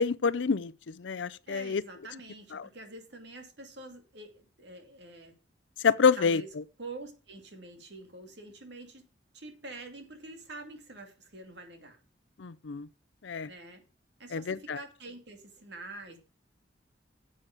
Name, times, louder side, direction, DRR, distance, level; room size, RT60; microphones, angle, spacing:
voice 1, 0.0-1.8 2.5-2.7 5.8-6.4 12.4-12.9 13.2-13.5 14.3-14.8, left 5 dB, 80° left, 0.5 m, -27 dB
voice 2, 1.5-5.3 6.2-6.5 6.8-9.0 9.3-12.0 13.5-13.8 14.2-16.2, right 2 dB, 65° right, 2.4 m, -46 dB
10.0 x 7.6 x 5.0 m
head